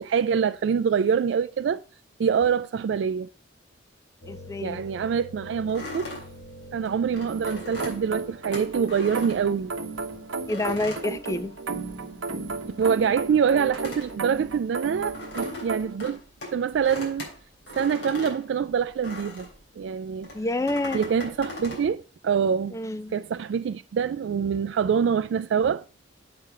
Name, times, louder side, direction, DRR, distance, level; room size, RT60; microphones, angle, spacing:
voice 1, 0.0-1.8 2.2-3.3 4.6-6.1 6.7-9.7 12.8-16.2 16.5-17.3 17.7-19.5 19.8-20.3 20.9-22.8 23.1-25.9, right 7 dB, 70° right, 0.3 m, -25 dB
sound 1, 4.2-10.9, equal, 40° left, 3.5 m, -47 dB
voice 2, 4.3-4.8 10.5-11.6 20.3-21.0 22.7-23.1, left 2 dB, 15° left, 0.3 m, -28 dB
sound 2, 5.7-10.0 10.5-12.0 12.2-19.6 20.2-21.9, left 1 dB, 65° left, 3.8 m, -39 dB
sound 3, 7.3-16.0, right 4 dB, 90° right, 0.8 m, -34 dB
8.0 x 4.8 x 5.6 m
head